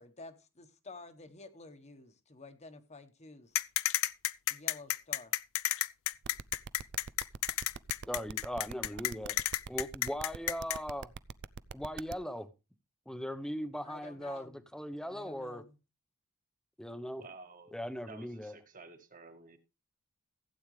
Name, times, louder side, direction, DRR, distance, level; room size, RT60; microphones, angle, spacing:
voice 1, 0.0-3.6 4.5-5.3 8.9-9.0 13.8-14.6 15.1-15.8, left 3 dB, 30° left, 1.3 m, -51 dB
sound 1, 3.5-10.8, left 15 dB, 65° left, 0.5 m, -31 dB
sound 2, 6.2-12.1, right 6 dB, 55° right, 0.5 m, -43 dB
voice 2, 8.0-9.3 9.7-11.1 11.7-12.5 13.1-15.6 16.8-17.2 17.7-18.6, equal, 5° left, 0.9 m, -39 dB
voice 3, 17.2-17.8 18.1-19.6, right 3 dB, 40° right, 1.8 m, -52 dB
15.5 x 8.8 x 3.2 m
head